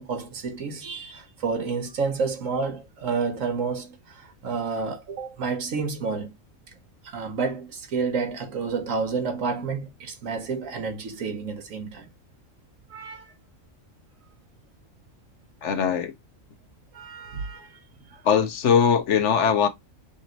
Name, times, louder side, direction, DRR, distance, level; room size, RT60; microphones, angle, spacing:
voice 1, 0.0-6.3 7.0-12.1 12.9-13.3 16.9-17.8 18.1-18.2, right 5 dB, 90° right, 1.5 m, -30 dB
voice 2, 15.6-16.1 18.2-19.7, left 7 dB, 65° left, 1.1 m, -20 dB
6.8 x 3.1 x 2.5 m
omnidirectional pair, 1.3 m